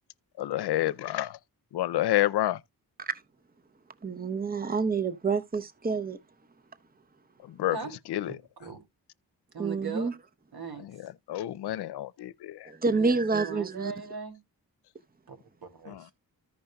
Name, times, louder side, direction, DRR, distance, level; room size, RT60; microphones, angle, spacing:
voice 1, 0.4-1.4 1.7-2.6 7.4-7.8 8.1-8.3 10.8-12.7 15.9-16.0, left 14 dB, 85° left, 0.5 m, -29 dB
voice 2, 4.0-6.2 9.6-10.1 12.6-13.9, right 4 dB, 25° right, 0.9 m, -28 dB
voice 3, 8.2-8.8 9.5-10.1 10.5-10.8 12.9-14.4 15.3-16.1, right 5 dB, 70° right, 2.8 m, -39 dB
14.5 x 5.5 x 2.2 m
cardioid pair, 55°, 38 cm